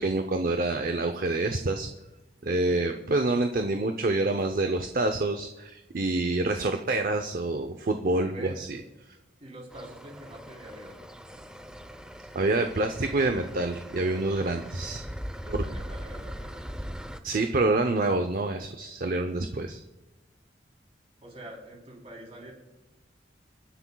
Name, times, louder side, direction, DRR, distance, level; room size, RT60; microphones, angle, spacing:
voice 1, 0.0-1.9 2.4-8.7 12.3-15.0 17.2-19.8, right 2 dB, 50° right, 6 dB, 0.7 m, -27 dB
voice 2, 2.7-3.0 8.2-8.6 9.4-11.1 15.4-16.7 21.2-22.5, right 1 dB, 35° right, -1 dB, 3.6 m, -45 dB
sound 1, 9.7-17.2, equal, 5° right, 0.6 m, -40 dB
29.5 x 9.9 x 2.3 m, 1.0 s
head